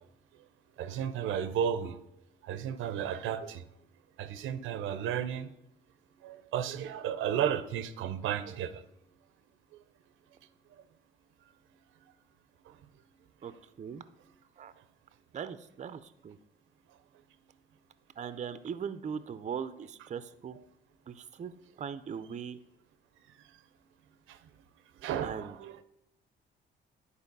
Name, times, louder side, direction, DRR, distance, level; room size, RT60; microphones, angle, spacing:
voice 1, 0.8-2.0 2.4-3.6 4.2-5.5 6.2-8.7 24.3-24.4 25.0-25.8, right 9 dB, 85° right, 0.6 m, -33 dB
voice 2, 15.3-16.4 18.2-20.6 21.1-21.5 21.8-22.6 25.2-25.6, right 7 dB, 35° right, 0.5 m, -39 dB
9.7 x 4.2 x 5.3 m
cardioid pair, 90°, 20 cm